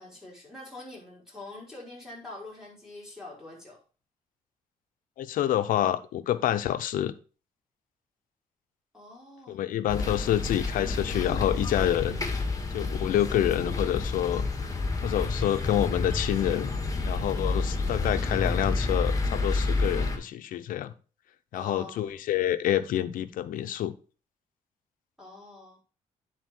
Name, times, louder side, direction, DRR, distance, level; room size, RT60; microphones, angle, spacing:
voice 1, 0.0-3.8 8.9-9.7 21.5-22.1 25.2-25.8, left 2 dB, 5° right, -4 dB, 5.2 m, -45 dB
voice 2, 5.2-7.1 9.5-12.2 12.7-14.5 15.0-16.7 17.0-20.9 21.5-23.9, left 12 dB, 85° left, 12 dB, 0.7 m, -27 dB
sound 1, 9.9-20.2, left 3 dB, 25° left, 1.7 m, -29 dB
10.5 x 4.3 x 4.5 m, 0.35 s
cardioid pair, 95°, 14 cm